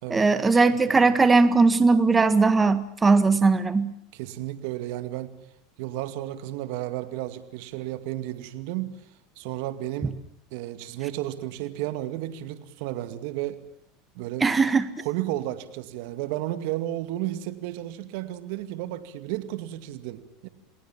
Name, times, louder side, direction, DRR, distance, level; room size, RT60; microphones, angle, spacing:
voice 1, 0.1-3.9 14.4-14.9, right 4 dB, 15° right, 12 dB, 1.8 m, -19 dB
voice 2, 4.1-5.4 5.8-9.0 9.4-10.2 10.5-13.6 14.1-14.5 15.0-20.5, right 14 dB, 70° right, 11 dB, 2.3 m, -33 dB
29.0 x 19.5 x 7.4 m, 0.68 s
supercardioid pair, 110°, 0 cm